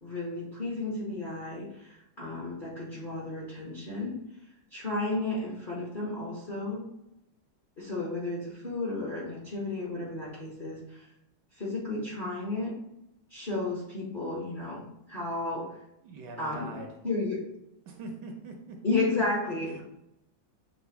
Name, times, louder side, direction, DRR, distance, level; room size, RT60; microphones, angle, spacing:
voice 1, 0.0-4.1 4.7-6.8 7.8-11.0 11.5-12.7 13.3-15.8 16.4-16.8 17.0-17.4 18.8-19.8, left 2 dB, 40° left, -6 dB, 0.7 m, -33 dB
voice 2, 16.0-16.9 17.9-18.8 19.7-19.8, right 3 dB, 70° right, 2 dB, 1.2 m, -42 dB
6.5 x 2.2 x 3.3 m, 0.85 s
omnidirectional pair, 2.2 m